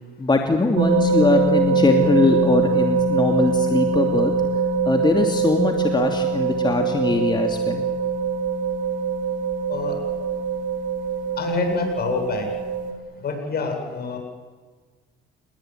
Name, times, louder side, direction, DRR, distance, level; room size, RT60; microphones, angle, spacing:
voice 1, 0.2-4.3 4.9-7.8, left 3 dB, 25° left, 4 dB, 2.8 m, -21 dB
sound 1, 0.7-12.9, right 4 dB, 75° right, 3.8 m, -23 dB
voice 2, 11.4-12.5 13.2-14.2, left 4 dB, 55° left, 4 dB, 8.0 m, -26 dB
29.5 x 20.5 x 9.5 m, 1.4 s
cardioid pair, 85°, 19 cm